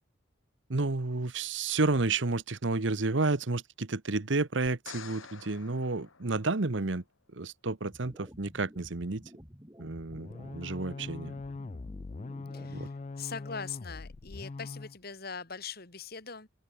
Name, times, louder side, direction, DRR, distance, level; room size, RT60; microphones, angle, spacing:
voice 1, 0.7-7.0 7.3-9.2 9.8-11.3 12.7-12.9, right 3 dB, 65° right, 1.1 m, -31 dB
sound 1, 4.7-7.0 10.3-10.4, left 6 dB, 80° left, 2.5 m, -49 dB
sound 2, 7.9-12.9, equal, 15° right, 3.9 m, -52 dB
sound 3, 10.1-15.0, left 3 dB, 35° left, 0.4 m, -42 dB
voice 2, 12.5-16.5, left 5 dB, 50° left, 2.5 m, -41 dB
open air
head